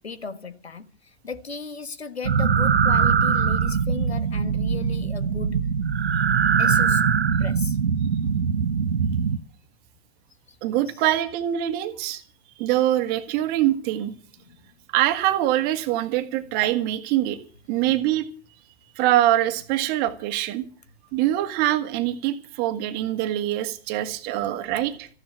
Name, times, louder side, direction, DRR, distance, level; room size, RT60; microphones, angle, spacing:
voice 1, 0.0-5.7 6.6-7.1 7.4-7.8 10.5-10.6 10.9-11.0 14.4-14.6, left 5 dB, 75° left, 1.6 m, -36 dB
sound 1, 2.2-9.4, right 6 dB, 70° right, 1.0 m, -22 dB
voice 2, 10.6-12.2 12.6-14.1 14.9-17.4 17.7-18.3 19.0-20.6 21.1-25.1, right 13 dB, 30° right, 1.8 m, -24 dB
14.5 x 10.5 x 7.6 m
figure-of-eight pair, 105°, 32 cm